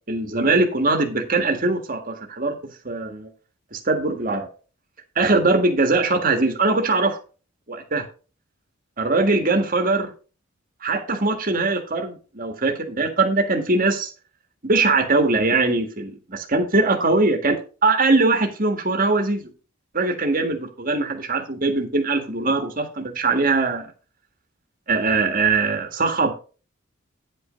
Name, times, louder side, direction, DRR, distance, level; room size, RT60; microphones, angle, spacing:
voice 1, 0.0-2.5 2.8-3.3 3.7-4.5 5.1-7.2 7.7-8.1 9.0-10.1 10.8-14.1 14.7-19.4 19.9-23.8 24.9-26.3, right 3 dB, 40° right, 4 dB, 1.7 m, -21 dB
9.8 x 5.4 x 5.1 m, 0.36 s
head